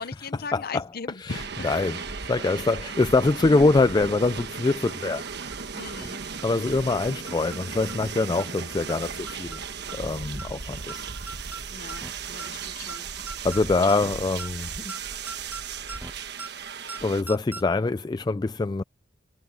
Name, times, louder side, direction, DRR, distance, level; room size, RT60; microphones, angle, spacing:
voice 1, 0.0-1.7 1.9-2.0 5.7-6.2 11.7-13.1, left 4 dB, 50° left, 0.8 m, -38 dB
voice 2, 0.5-0.8 1.2-2.0 2.3-5.2 6.4-9.6 9.9-11.1 13.4-14.9 17.0-18.8, left 3 dB, 20° left, 0.3 m, -24 dB
sound 1, 1.3-17.2, right 6 dB, 60° right, 1.3 m, -36 dB
sound 2, 2.1-2.2 2.4-2.5 2.9-3.0 3.3-3.6 3.9-4.1 4.4-4.5 4.9-5.0 5.3-5.6 5.9-6.1 6.4-6.5 6.9-7.0 7.3-7.6 7.9-8.1 8.4-8.5 8.9-9.0 9.3-9.6 9.9-10.1 10.4-10.5 10.9-11.0 11.3-11.6 11.9-12.1 12.4-12.5 12.9-13.0 13.3-13.6 13.9-14.1 14.4-14.5 14.9-15.0 15.3-15.6 15.9-16.1 16.4-16.5 16.9-17.0 17.3-17.6, right 3 dB, 10° right, 1.2 m, -39 dB
head